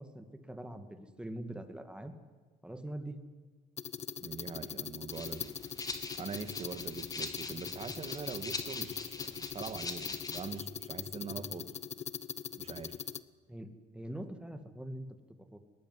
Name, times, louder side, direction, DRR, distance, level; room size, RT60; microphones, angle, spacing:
voice 1, 0.0-2.1 2.6-3.2 13.5-15.6, right 1 dB, 5° right, 8 dB, 2.4 m, -43 dB
sound 1, 3.8-13.2, left 8 dB, 40° left, 0.8 m, -41 dB
voice 2, 4.2-11.7 12.6-13.0, right 5 dB, 35° right, 11 dB, 1.9 m, -43 dB
Rattle (instrument), 5.1-10.6, left 3 dB, 20° left, 2.7 m, -43 dB
21.0 x 18.5 x 9.9 m, 1.4 s
cardioid pair, 110°, 17 cm